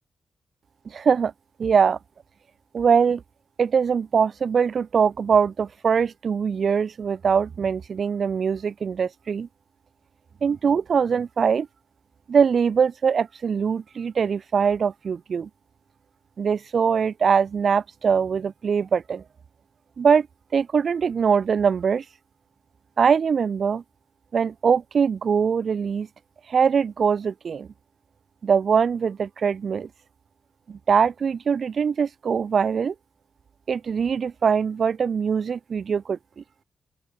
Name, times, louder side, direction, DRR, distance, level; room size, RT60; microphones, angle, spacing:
voice 1, 0.9-1.3 1.6-2.0 2.7-3.2 3.6-9.5 10.4-11.7 12.3-15.5 16.4-19.2 20.0-20.3 20.5-22.0 23.0-23.8 24.3-26.1 26.5-27.7 28.4-29.9 30.7-32.9 33.7-36.4, right 6 dB, 65° right, 0.8 m, -22 dB
open air
cardioid pair, 75°, 0 cm